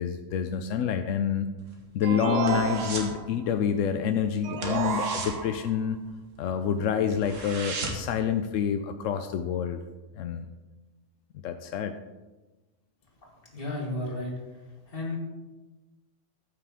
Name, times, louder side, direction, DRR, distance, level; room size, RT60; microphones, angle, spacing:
voice 1, 0.0-1.5 1.9-6.0 6.4-9.8 10.2-10.5 11.4-11.9, left 8 dB, 90° left, 7 dB, 1.0 m, -28 dB
sound 1, 1.6-3.2 3.5-3.8 4.0-4.2 4.5-6.4 6.8-6.9 7.1-8.2 8.6-8.7, right 3 dB, 85° right, 1.6 m, -37 dB
sound 2, 2.0-3.4 4.4-5.8, right 5 dB, 50° right, 0.5 m, -31 dB
voice 2, 13.5-14.3 14.9-15.2, left 2 dB, 45° left, -2 dB, 2.1 m, -32 dB
13.5 x 5.8 x 3.5 m, 1.2 s
omnidirectional pair, 1.3 m